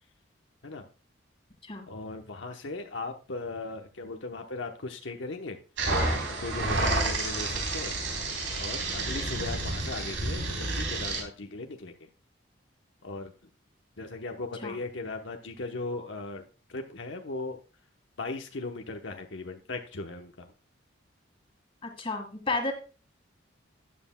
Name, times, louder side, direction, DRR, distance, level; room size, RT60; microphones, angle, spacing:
voice 1, 1.9-5.6 6.4-8.0 8.5-11.9 13.0-13.3 14.0-16.4 16.7-17.6 18.2-20.5, left 3 dB, 75° left, 4 dB, 0.9 m, -37 dB
sound 1, 5.8-11.2, right 2 dB, 85° right, 3.9 m, -30 dB
voice 2, 21.8-22.7, left 3 dB, 30° left, 5 dB, 1.8 m, -32 dB
12.5 x 9.6 x 2.2 m, 0.35 s
head